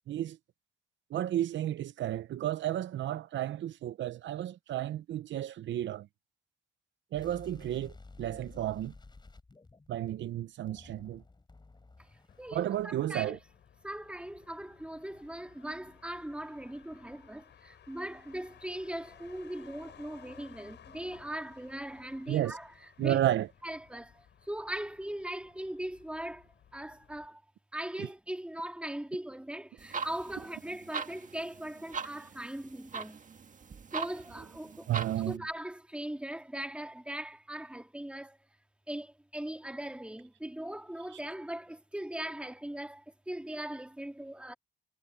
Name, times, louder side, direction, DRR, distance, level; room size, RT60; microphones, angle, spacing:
voice 1, 1.1-6.1 7.1-8.9 9.9-11.2 12.5-13.4 22.3-22.6 23.0-23.5 28.0-28.1 34.9-35.4, right 12 dB, 70° right, 0.7 m, -32 dB
sound 1, 7.1-10.3 10.6-12.8, left 3 dB, 20° left, 6.6 m, -53 dB
Motor vehicle (road), 12.3-27.3, left 9 dB, 60° left, 6.8 m, -58 dB
voice 2, 12.4-13.4 13.8-22.7 23.0-23.2 23.6-27.4 27.7-33.2 33.9-34.9 35.2-38.4 38.9-44.5, right 1 dB, 5° right, 2.9 m, -40 dB
sound 2, 29.8-35.4, right 5 dB, 40° right, 1.7 m, -41 dB
cardioid pair, 90°, 20 cm